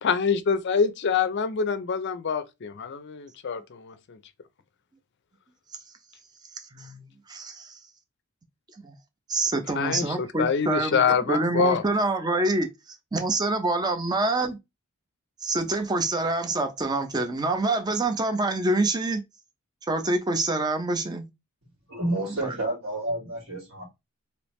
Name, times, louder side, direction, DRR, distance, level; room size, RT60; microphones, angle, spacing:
voice 1, 0.0-4.2 9.7-11.8, left 6 dB, 50° left, 0.4 m, -25 dB
voice 2, 6.7-7.0 7.3-7.8 8.8-8.9 9.3-14.6 15.4-19.2 19.9-21.3 22.4-22.6, right 2 dB, 20° right, 0.5 m, -26 dB
voice 3, 21.9-23.8, right 1 dB, 65° right, 2.0 m, -30 dB
3.3 x 2.9 x 3.1 m
head